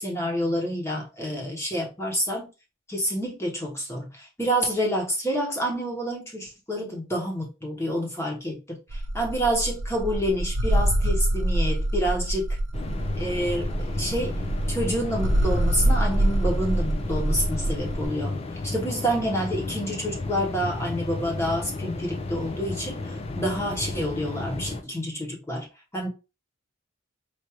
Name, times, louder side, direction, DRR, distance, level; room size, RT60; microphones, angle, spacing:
voice 1, 0.0-2.5 2.9-12.5 13.2-14.3 14.7-18.4 18.6-25.7 25.9-26.1, equal, 10° left, 1.1 m, -28 dB
sound 1, 8.9-18.1, right 1 dB, 60° right, 0.5 m, -25 dB
sound 2, 12.7-24.8, left 2 dB, 30° left, 0.4 m, -33 dB
4.8 x 2.6 x 3.0 m
head